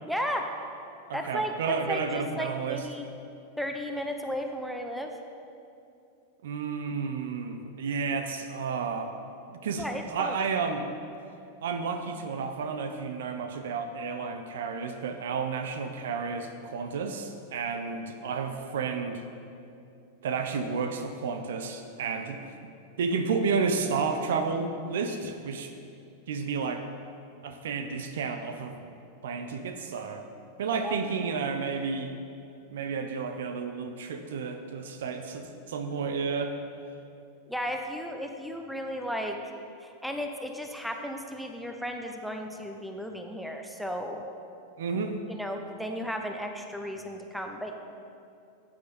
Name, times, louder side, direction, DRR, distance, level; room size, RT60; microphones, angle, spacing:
voice 1, 0.0-0.5 1.1-1.5 1.9-3.0 3.6-5.1 9.8-10.4 30.7-31.0 37.5-39.4 39.8-44.2 45.3-47.7, equal, ahead, 4 dB, 1.0 m, -34 dB
voice 2, 1.1-2.8 6.4-9.1 9.6-10.9 11.6-19.2 20.2-22.4 23.0-25.7 26.3-26.8 27.4-28.8 29.2-30.3 30.6-32.1 32.7-36.5 44.8-45.2, right 5 dB, 60° right, 7 dB, 0.7 m, -31 dB
14.0 x 8.7 x 4.3 m, 2.6 s
figure-of-eight pair, 90°, 0 cm